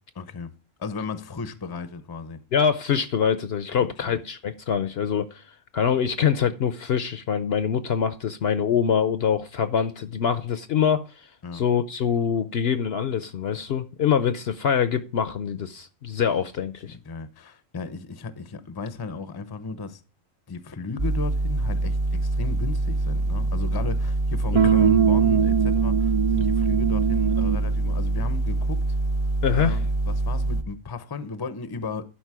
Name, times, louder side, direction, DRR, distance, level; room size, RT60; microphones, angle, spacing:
voice 1, 0.1-0.5 0.8-2.4 3.7-3.9 11.4-11.6 16.9-20.0 20.5-28.8 29.5-32.1, left 4 dB, 25° left, 0.5 m, -35 dB
voice 2, 2.5-5.4 5.7-11.1 11.5-17.0 24.5-24.7 29.4-29.8, left 7 dB, 60° left, 0.7 m, -24 dB
sound 1, 21.0-30.6, right 2 dB, 35° right, 0.8 m, -25 dB
sound 2, 24.5-27.7, right 8 dB, 65° right, 0.3 m, -21 dB
11.5 x 5.1 x 4.7 m
omnidirectional pair, 1.4 m